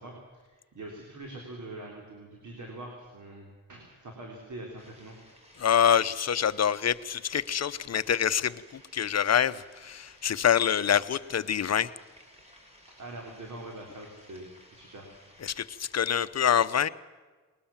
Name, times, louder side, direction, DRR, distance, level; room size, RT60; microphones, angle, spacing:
voice 1, 0.0-5.2 13.0-15.1, right 2 dB, 55° right, 1 dB, 3.9 m, -44 dB
sound 1, 4.8-16.1, equal, 20° right, 4.4 m, -57 dB
voice 2, 5.6-11.9 15.4-16.9, left 8 dB, 45° left, 13 dB, 0.8 m, -26 dB
21.0 x 19.5 x 7.2 m, 1.3 s
cardioid pair, 105°, 35 cm